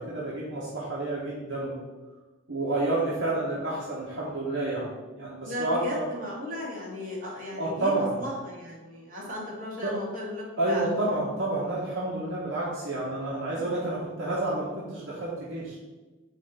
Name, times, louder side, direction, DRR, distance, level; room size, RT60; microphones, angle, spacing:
voice 1, 0.0-1.8 2.5-4.9 5.1-6.1 7.6-8.2 9.8-10.0 10.6-15.8, right 2 dB, 65° right, -7 dB, 1.6 m, -29 dB
voice 2, 5.5-10.9 13.5-13.7, left 1 dB, 45° right, -5 dB, 2.5 m, -36 dB
8.7 x 3.0 x 5.8 m, 1.2 s
head